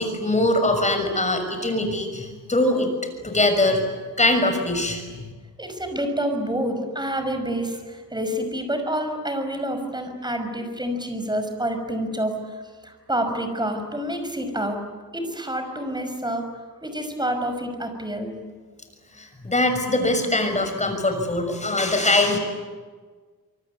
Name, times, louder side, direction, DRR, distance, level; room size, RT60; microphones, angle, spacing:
voice 1, 0.0-2.9 3.2-3.9 4.2-5.3 19.1-22.4, left 2 dB, 20° left, 6 dB, 6.4 m, -22 dB
voice 2, 5.6-14.8 15.1-16.5 16.8-18.4, right 1 dB, 10° right, 6 dB, 6.0 m, -28 dB
26.0 x 24.0 x 9.7 m, 1.5 s
cardioid pair, 110°, 35 cm